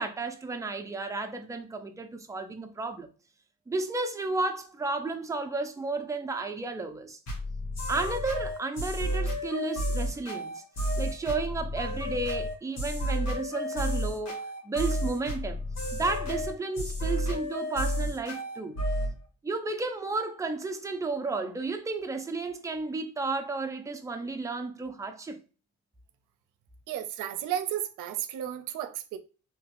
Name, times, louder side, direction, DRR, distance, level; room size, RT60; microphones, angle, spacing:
voice 1, 0.0-3.1 3.7-7.2 7.9-10.6 11.0-15.6 15.9-18.7 19.4-25.4, right 3 dB, 10° right, 0.5 m, -33 dB
sound 1, 7.3-19.1, equal, 60° left, 1.7 m, -31 dB
voice 2, 26.9-29.2, right 11 dB, 90° right, 0.5 m, -33 dB
3.3 x 2.9 x 2.4 m
cardioid pair, 90°, 30 cm